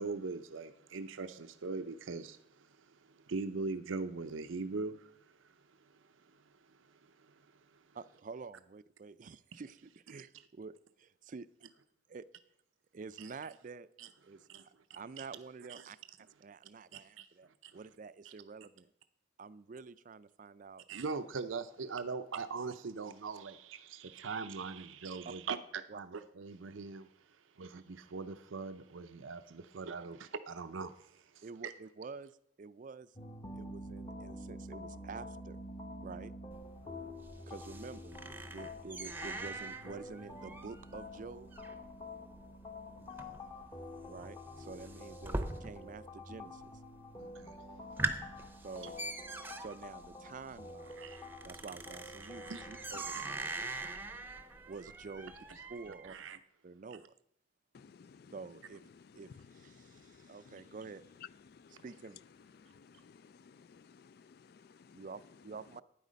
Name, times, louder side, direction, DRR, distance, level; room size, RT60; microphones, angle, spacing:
voice 1, 0.0-5.5 5.8-6.0 6.3-7.8 13.2-13.3 14.0-14.1 14.5-14.6 15.2-15.3 15.7-15.9 16.9-17.3 17.6-17.7 18.2-18.3 20.9-27.1 27.6-31.7 36.8-37.1 43.0-43.1 47.2-47.5 51.0-51.2 52.4-52.6 53.1-53.2 53.5-53.6 55.2-55.3 55.9-56.4, right 4 dB, 85° right, 0.6 m, -42 dB
voice 2, 7.9-11.5 12.1-12.3 12.9-13.9 14.2-16.0 16.4-18.9 19.4-20.8 25.2-25.3 25.9-26.0 31.4-32.3 32.6-33.1 33.5-35.6 36.0-36.3 37.5-41.5 44.1-46.7 48.6-49.0 49.6-51.0 51.4-53.4 54.7-55.4 55.7-56.2 56.6-57.1 58.3-58.8 59.2-61.0 61.8-62.2 64.9-65.8, right 4 dB, 40° right, 0.4 m, -48 dB
sound 1, 33.1-53.1, left 1 dB, 20° left, 0.9 m, -48 dB
sound 2, 36.5-46.1 46.3-46.9 47.3-47.4 47.8-56.1, right 2 dB, 10° right, 0.7 m, -43 dB
voice 3, 57.7-58.3 59.1-59.5 59.7-60.7 61.5-61.8 62.6-65.0, left 5 dB, 55° left, 0.3 m, -58 dB
12.0 x 9.3 x 5.2 m
head